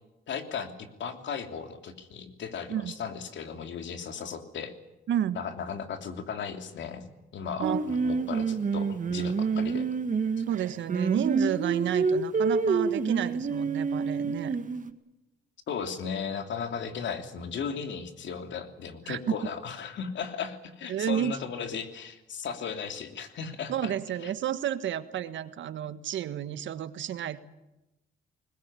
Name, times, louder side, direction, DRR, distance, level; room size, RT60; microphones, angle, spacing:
voice 1, 0.3-4.7 5.3-7.1 7.3-9.9 15.7-23.9 24.2-24.3, left 6 dB, 70° left, 7 dB, 3.1 m, -36 dB
voice 2, 5.1-5.4 7.6-7.9 8.2-8.3 10.5-14.6 19.1-19.4 20.9-21.3 23.7-27.4, right 10 dB, 70° right, 12 dB, 1.5 m, -31 dB
Singing, 7.6-14.9, right 5 dB, 40° right, 1.8 m, -28 dB
21.0 x 20.5 x 9.8 m, 0.96 s
cardioid pair, 90°, 20 cm